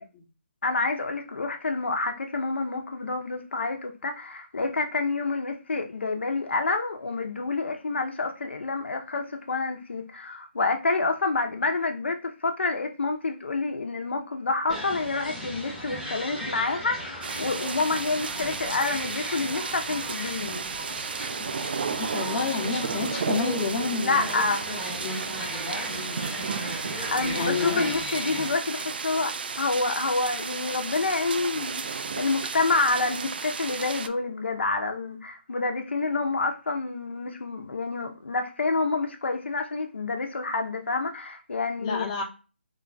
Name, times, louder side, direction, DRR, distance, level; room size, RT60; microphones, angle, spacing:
voice 1, 0.6-20.7 24.0-24.7 27.1-42.1, left 3 dB, 80° left, 0.6 m, -28 dB
sound 1, 14.7-28.5, equal, 5° right, 0.7 m, -36 dB
sound 2, 17.2-34.1, right 5 dB, 60° right, 0.3 m, -33 dB
voice 2, 22.0-24.3 25.0-25.3 25.9-26.4 27.3-28.0 41.8-42.2, left 4 dB, 30° left, 0.7 m, -29 dB
3.2 x 2.2 x 3.8 m
figure-of-eight pair, 155°, 6 cm